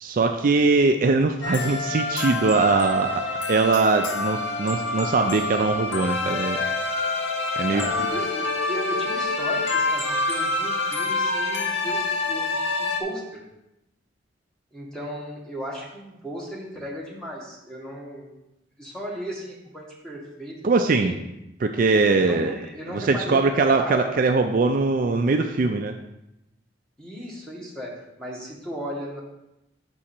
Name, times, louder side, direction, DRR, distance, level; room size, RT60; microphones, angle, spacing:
voice 1, 0.0-3.2 3.5-6.6 7.6-7.8 20.6-21.2 21.6-22.5 22.9-25.9, right 3 dB, 45° right, 5 dB, 0.4 m, -21 dB
sound 1, 1.4-13.0, left 3 dB, 75° left, 0.8 m, -27 dB
voice 2, 7.5-12.0 12.3-13.4 14.7-18.3 18.8-21.2 22.2-24.2 27.0-29.2, equal, 5° left, -3 dB, 1.4 m, -36 dB
6.2 x 4.9 x 4.3 m, 0.88 s
head